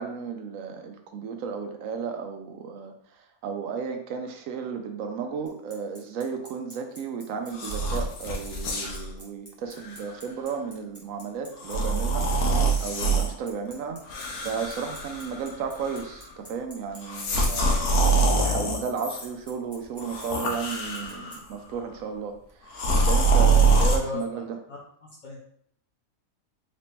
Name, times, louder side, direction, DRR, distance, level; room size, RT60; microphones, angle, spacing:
voice 1, 0.0-14.0 14.4-24.5, right 6 dB, 70° right, 5 dB, 0.9 m, -34 dB
Bicycle, 5.5-21.4, equal, 10° right, 1.1 m, -47 dB
sound 1, 7.5-9.1 9.8-10.0 11.6-13.3 14.1-15.5 15.8-16.2 17.0-19.3 20.0-21.4 22.7-24.0, right 3 dB, 80° left, 1.2 m, -24 dB
voice 2, 24.7-25.4, left 4 dB, 55° left, -4 dB, 0.5 m, -37 dB
4.1 x 3.1 x 2.9 m, 0.64 s
omnidirectional pair, 1.5 m